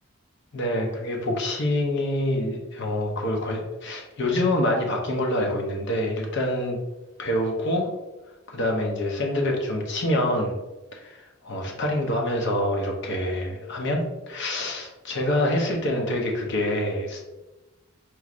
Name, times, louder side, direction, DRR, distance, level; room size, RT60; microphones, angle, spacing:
voice 1, 0.5-6.8 7.2-7.9 8.5-10.6 10.9-17.3, left 1 dB, 55° left, 1 dB, 0.7 m, -26 dB
4.6 x 3.0 x 2.4 m, 1.1 s
head